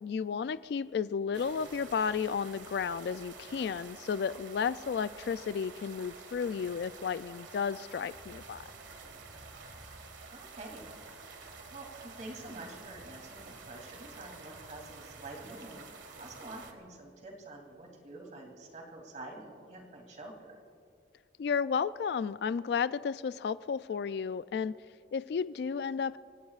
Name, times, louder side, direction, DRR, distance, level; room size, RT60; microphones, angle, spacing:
voice 1, 0.0-8.6 21.4-24.8 25.1-26.2, left 6 dB, 60° left, 16 dB, 0.3 m, -33 dB
sound 1, 1.3-16.7, right 4 dB, 85° right, 1.7 m, -49 dB
voice 2, 10.3-10.9 11.7-15.8 16.2-20.5, right 2 dB, 40° right, 1 dB, 2.9 m, -47 dB
30.0 x 16.5 x 2.4 m, 2.5 s
head